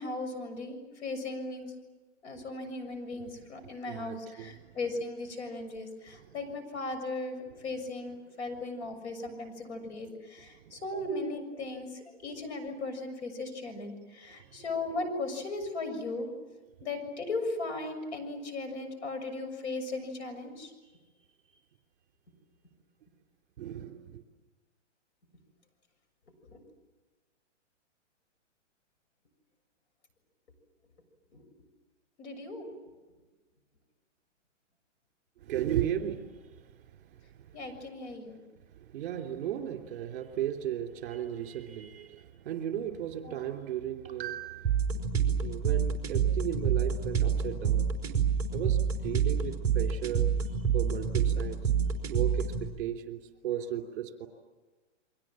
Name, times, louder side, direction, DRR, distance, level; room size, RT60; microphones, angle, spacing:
voice 1, 0.0-1.7 2.2-11.9 12.2-16.3 16.8-20.7 26.5-26.6 31.3-31.4 32.2-32.7 37.5-38.4 43.3-43.4, left 2 dB, 65° left, 7 dB, 7.0 m, -37 dB
voice 2, 3.9-4.8 6.1-6.4 7.6-7.7 10.6-10.8 14.2-14.5 20.8-21.0 21.5-21.6 23.6-24.2 35.4-36.7 37.0-38.2 38.7-45.1 45.4-47.9 48.5-50.3 50.7-51.6 52.1-54.3, right 10 dB, 45° right, 4 dB, 3.2 m, -36 dB
sound 1, 44.6-52.6, right 7 dB, 10° right, 3.7 m, -28 dB
29.5 x 23.5 x 7.6 m, 1.3 s
hypercardioid pair, 165°, 37 cm